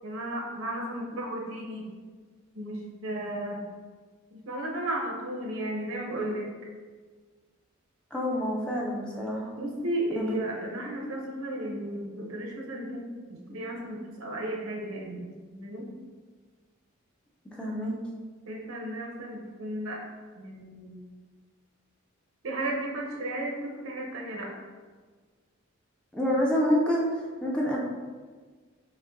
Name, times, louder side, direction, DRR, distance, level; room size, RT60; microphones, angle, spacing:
voice 1, 0.0-1.9 2.5-3.6 4.5-6.5 9.6-15.9 18.4-20.0 20.4-21.0 22.4-24.5, right 1 dB, 85° right, -1 dB, 0.8 m, -34 dB
voice 2, 8.1-9.5 10.2-10.4 17.6-18.0 26.1-27.8, equal, 5° left, -3 dB, 0.4 m, -27 dB
5.3 x 2.1 x 2.5 m, 1.5 s
head